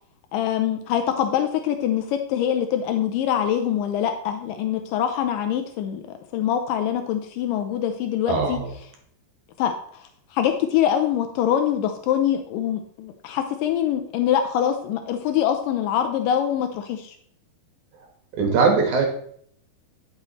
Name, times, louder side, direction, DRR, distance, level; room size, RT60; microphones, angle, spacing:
voice 1, 0.3-6.0 6.3-8.6 9.6-9.7 10.0-17.2, left 10 dB, 85° left, 6 dB, 2.0 m, -24 dB
voice 2, 8.3-8.7 18.3-19.0, right 4 dB, 60° right, 2 dB, 2.5 m, -20 dB
11.5 x 6.2 x 3.1 m, 0.62 s
omnidirectional pair, 4.5 m